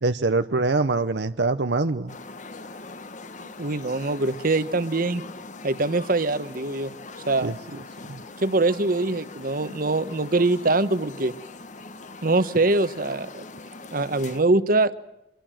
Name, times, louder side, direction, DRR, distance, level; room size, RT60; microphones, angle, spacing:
voice 1, 0.0-2.1 7.4-7.8 8.1-8.2, right 3 dB, 75° right, 0.8 m, -24 dB
sound 1, 2.1-14.4, left 3 dB, 45° left, 1.3 m, -41 dB
voice 2, 3.6-5.2 5.6-6.9 7.3-7.5 8.4-11.3 12.2-13.4 13.9-15.0, right 2 dB, 55° right, 1.2 m, -23 dB
25.5 x 22.0 x 7.7 m
head